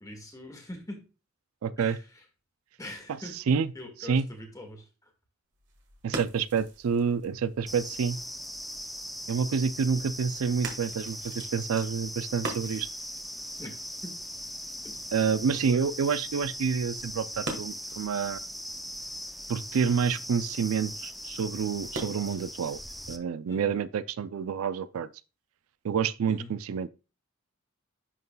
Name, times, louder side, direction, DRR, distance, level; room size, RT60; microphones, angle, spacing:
voice 1, 0.0-1.0 1.8-2.0 2.8-5.1 13.6-13.7 14.0-14.2 14.8-15.0 15.5-15.9 23.5-23.7 26.3-26.5, left 1 dB, 15° left, 1.6 m, -43 dB
voice 2, 1.6-2.0 3.3-3.7 4.0-4.3 6.0-8.2 9.3-12.9 15.1-18.4 19.5-22.8 23.1-25.1 25.8-26.9, right 6 dB, 85° right, 0.4 m, -28 dB
sound 1, 5.5-22.7, right 3 dB, 60° right, 1.5 m, -45 dB
sound 2, 7.7-23.2, equal, ahead, 0.4 m, -40 dB
11.0 x 3.9 x 2.2 m
head